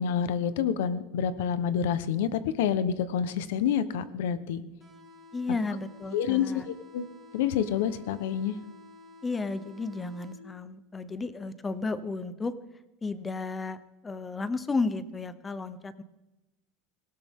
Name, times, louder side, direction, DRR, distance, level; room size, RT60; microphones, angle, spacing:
voice 1, 0.0-4.6 6.1-7.0 7.3-8.6, left 8 dB, 90° left, 14 dB, 1.1 m, -28 dB
sound 1, 4.8-10.8, left 2 dB, 15° right, 3.7 m, -52 dB
voice 2, 5.3-6.7 9.2-12.5 13.0-16.0, left 3 dB, 15° left, 14 dB, 0.8 m, -33 dB
19.0 x 17.0 x 3.7 m, 1.0 s
supercardioid pair, 155°, 0 cm